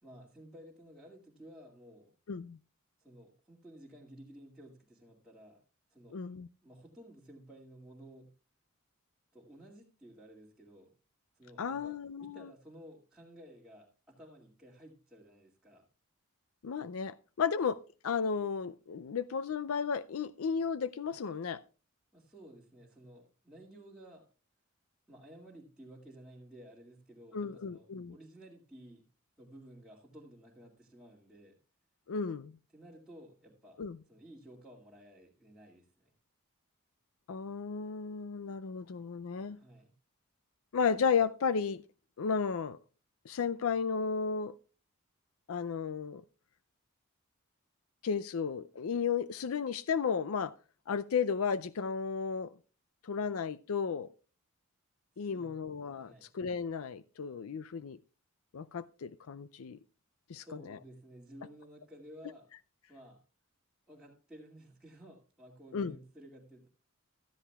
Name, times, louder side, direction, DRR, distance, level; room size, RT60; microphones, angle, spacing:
voice 1, 0.0-2.2 3.0-5.6 5.9-6.2 6.6-8.3 9.3-10.9 11.3-15.9 22.1-24.2 25.1-29.0 29.4-31.6 32.7-33.8 34.1-36.1 39.6-39.9 55.1-55.7 56.0-56.3 60.3-62.5 62.9-63.2 63.9-66.7, right 1 dB, 5° right, 2.2 m, -54 dB
voice 2, 6.1-6.5 11.6-12.5 16.6-21.6 27.3-28.1 32.1-32.5 33.8-34.0 37.3-39.6 40.7-41.8 42.2-42.8 43.3-44.5 45.5-46.2 48.0-50.5 50.9-52.5 53.0-54.1 55.2-58.0 58.5-59.8 60.3-60.8 65.7-66.0, left 6 dB, 70° left, 0.5 m, -34 dB
15.5 x 13.0 x 2.3 m
head